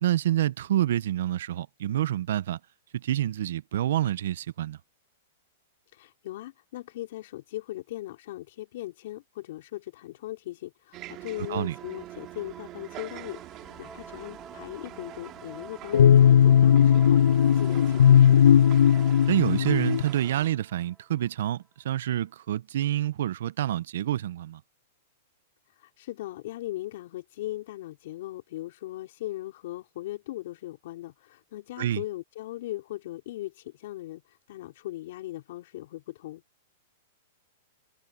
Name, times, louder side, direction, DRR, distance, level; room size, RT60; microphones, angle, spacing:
voice 1, 0.0-2.6 2.9-4.8 11.5-11.7 19.3-24.6 31.8-32.0, right 12 dB, 70° right, 0.7 m, -27 dB
voice 2, 5.9-18.6 25.7-36.4, left 15 dB, 60° left, 4.2 m, -39 dB
sound 1, 10.9-20.5, right 17 dB, 35° right, 2.3 m, -45 dB
sound 2, 11.4-21.8, right 4 dB, 10° right, 3.8 m, -49 dB
sound 3, 15.9-20.0, left 9 dB, 85° left, 0.3 m, -18 dB
hypercardioid pair, 135°, 0 cm